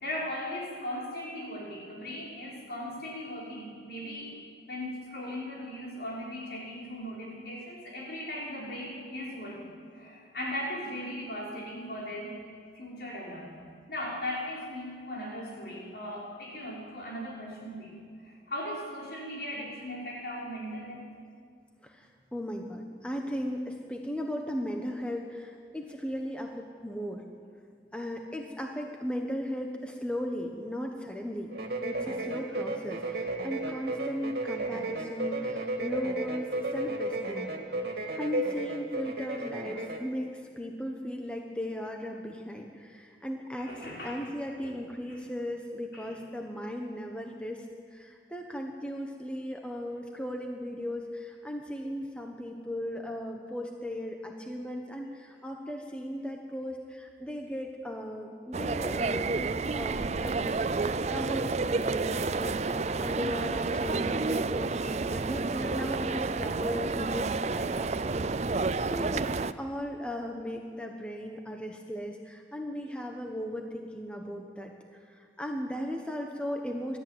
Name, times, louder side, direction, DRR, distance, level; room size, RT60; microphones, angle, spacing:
voice 1, 0.0-4.4 4.7-12.4 12.7-21.1 43.6-44.2 44.6-44.8 45.1-45.2 45.9-46.2, left 1 dB, 60° left, -4 dB, 5.7 m, -38 dB
voice 2, 21.8-27.2 27.9-31.5 31.8-37.5 38.2-60.6 61.1-77.0, equal, 5° left, 2 dB, 1.2 m, -37 dB
sound 1, 31.5-40.1, right 2 dB, 60° right, 2.6 m, -34 dB
sound 2, 58.5-69.5, right 3 dB, 40° right, 0.5 m, -30 dB
21.5 x 13.5 x 9.4 m, 2.1 s
head